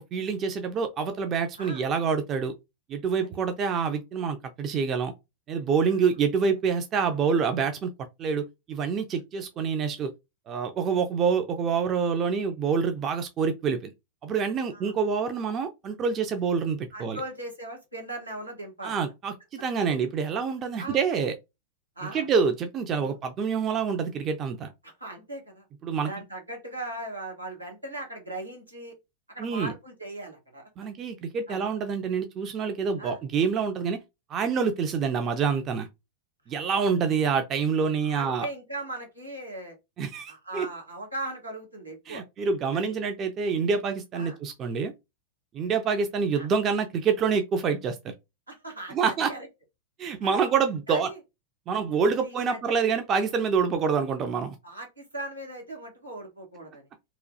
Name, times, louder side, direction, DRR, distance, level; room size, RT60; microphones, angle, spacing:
voice 1, 0.1-2.5 2.9-5.1 5.5-7.9 8.2-10.1 10.5-13.9 14.2-17.2 18.8-21.3 22.1-24.7 25.8-26.1 29.4-29.7 30.8-34.0 34.3-35.9 36.5-38.5 40.0-40.7 42.1-44.9 45.5-48.1 48.9-49.3 50.0-51.1 51.7-54.6, right 6 dB, 30° right, 0.4 m, -27 dB
voice 2, 16.9-19.0 20.8-21.0 22.0-22.3 23.0-23.2 24.8-25.6 26.1-29.0 29.3-30.6 31.5-31.7 33.0-33.2 38.0-39.8 40.3-42.2 42.7-42.9 44.1-44.4 46.4-46.5 48.5-49.5 50.2-50.4 50.9-51.2 52.2-52.6 54.6-56.8, right 1 dB, 85° right, 1.0 m, -39 dB
3.0 x 2.3 x 2.6 m
figure-of-eight pair, 90°, 0 cm